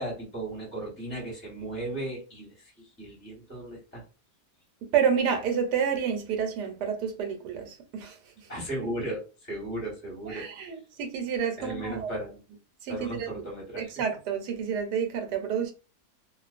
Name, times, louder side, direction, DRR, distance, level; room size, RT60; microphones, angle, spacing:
voice 1, 0.0-4.0 8.5-10.4 11.6-12.4 12.9-14.0, right 1 dB, 10° left, 0.9 m, -36 dB
voice 2, 4.8-8.5 10.3-12.1 12.8-13.3 13.8-15.7, right 7 dB, 80° right, 1.3 m, -29 dB
2.6 x 2.4 x 2.4 m
omnidirectional pair, 1.8 m